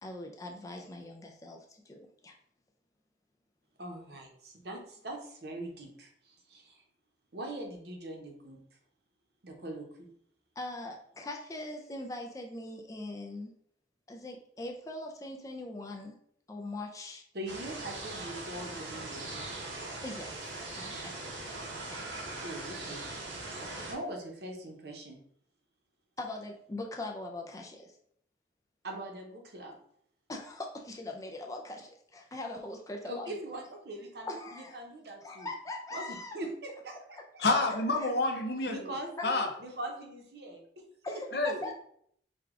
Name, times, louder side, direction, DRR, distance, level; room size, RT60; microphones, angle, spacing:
voice 1, 0.0-2.3 10.6-13.5 14.1-16.1 16.5-17.2 20.0-21.3 21.8-22.0 26.2-27.9 30.3-33.4 34.3-34.8 35.2-36.3 38.0-38.1 41.0-41.7, left 2 dB, 20° left, 1 dB, 0.4 m, -41 dB
voice 2, 3.8-6.8 7.3-8.6 9.4-10.1 17.3-19.7 22.4-23.1 23.6-25.2 28.8-29.8 33.0-35.5 35.9-37.4 38.7-41.7, right 1 dB, 60° right, 2 dB, 0.8 m, -42 dB
sound 1, 17.5-24.0, right 2 dB, 85° right, 0.9 m, -40 dB
voice 3, 37.4-38.9 39.2-39.5 41.3-41.6, left 2 dB, 60° left, 3 dB, 0.7 m, -28 dB
4.9 x 2.3 x 3.6 m, 0.67 s
head